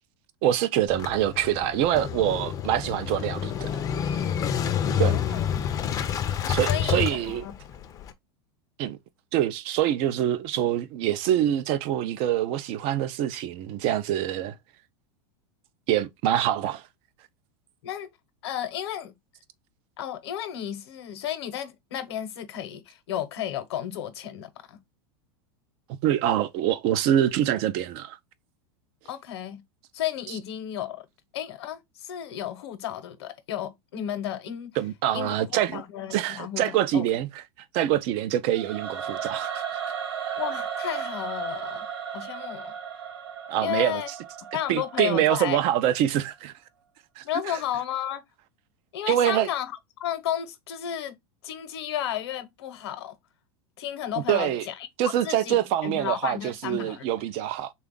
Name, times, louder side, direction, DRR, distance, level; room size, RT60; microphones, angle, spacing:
voice 1, 0.4-3.8 5.0-5.2 6.5-7.4 8.8-9.0 9.3-14.6 15.9-16.8 26.0-28.2 34.8-35.8 36.1-37.3 37.7-39.8 43.5-44.0 44.7-46.5 47.2-47.6 49.1-49.5 54.3-54.6 55.0-57.7, right 11 dB, 45° right, 0.5 m, -25 dB
Motorcycle / Engine starting, 0.9-8.1, left 8 dB, 25° left, 0.5 m, -28 dB
voice 2, 5.0-6.0 6.7-7.5 17.8-18.1 18.4-19.1 20.0-24.8 29.0-29.6 29.9-31.1 31.3-34.8 35.1-37.0 40.4-41.9 42.1-42.7 43.6-44.1 44.5-45.6 47.2-48.2 48.9-51.2 51.4-53.1 53.8-57.0, left 11 dB, 80° left, 0.9 m, -33 dB
Singing / Musical instrument, 38.5-45.6, right 8 dB, 85° right, 0.9 m, -35 dB
3.4 x 2.4 x 3.7 m
supercardioid pair, 140°, 13 cm